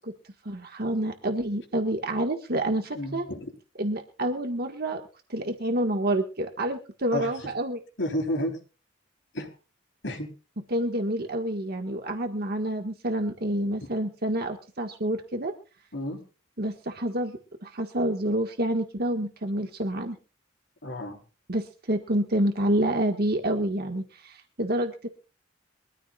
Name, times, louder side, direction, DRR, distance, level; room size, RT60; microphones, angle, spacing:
voice 1, 0.4-3.3 3.8-5.0 5.3-7.8 10.7-15.5 16.6-20.2 21.5-25.1, right 1 dB, 55° right, 4 dB, 1.7 m, -28 dB
voice 2, 2.9-3.5 7.1-7.3 8.0-8.6 9.3-9.5 10.0-10.3 15.9-16.2 20.8-21.2, left 1 dB, 65° left, 3 dB, 3.9 m, -31 dB
23.5 x 14.0 x 2.4 m, 0.35 s
head